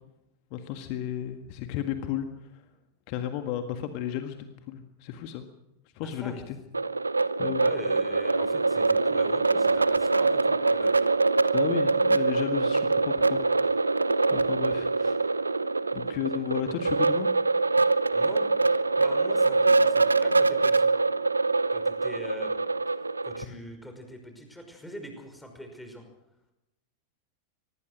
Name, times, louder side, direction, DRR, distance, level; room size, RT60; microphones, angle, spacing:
voice 1, 0.5-2.3 3.1-5.5 6.0-6.6 7.4-7.7 11.5-13.8 14.3-15.6 15.9-17.3, left 10 dB, 45° left, 7 dB, 1.8 m, -33 dB
voice 2, 6.0-6.5 7.4-11.0 16.3-16.4 18.1-18.5 19.0-20.9 21.7-22.6 22.9-26.0, equal, 5° left, 5 dB, 5.6 m, -43 dB
sound 1, 6.7-23.4, right 3 dB, 80° right, 0.8 m, -24 dB
24.5 x 20.0 x 6.3 m, 0.90 s
figure-of-eight pair, 90°, 0 cm